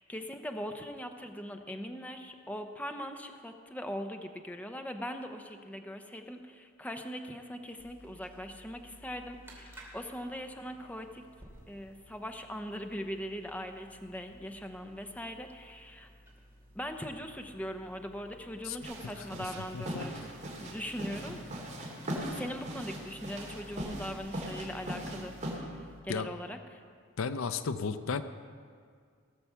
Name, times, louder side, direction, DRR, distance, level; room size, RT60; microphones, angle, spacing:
voice 1, 0.0-11.2 11.7-16.1 16.7-20.2 20.5-21.4 22.3-26.8, equal, 5° left, 5 dB, 0.7 m, -41 dB
sound 1, 7.8-26.0, equal, 10° right, 2.7 m, -55 dB
sound 2, 18.8-25.6, equal, 35° right, 3.0 m, -40 dB
voice 2, 19.7-20.1 26.1-26.3 27.2-28.2, left 5 dB, 75° left, 12 dB, 0.5 m, -33 dB
18.0 x 7.0 x 6.9 m, 2.1 s
head